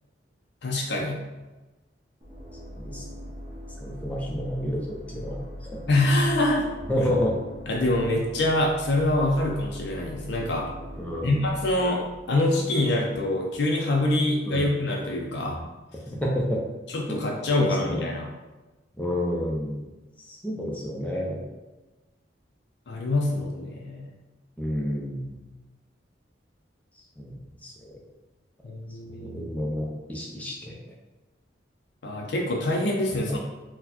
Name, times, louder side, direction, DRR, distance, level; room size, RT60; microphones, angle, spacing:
voice 1, 0.6-1.2 5.9-6.7 7.7-10.7 11.2-15.6 16.9-18.3 22.9-24.1 28.6-29.5 32.0-33.4, left 1 dB, 65° left, 0 dB, 0.4 m, -25 dB
sound 1, 2.2-13.0, equal, 25° right, 0.7 m, -41 dB
voice 2, 3.8-4.8 5.1-5.4 5.6-5.8 6.9-7.4 7.6-7.7 11.0-11.5 14.4-14.7 15.5-15.6 16.1-16.6 17.1-17.2 17.6-18.0 19.0-19.8 20.3-21.4 24.6-25.4 27.2-27.3 27.6-27.9 29.1-30.8 33.1-33.4, equal, 10° left, -3 dB, 0.5 m, -30 dB
4.0 x 2.1 x 2.8 m, 1.1 s
head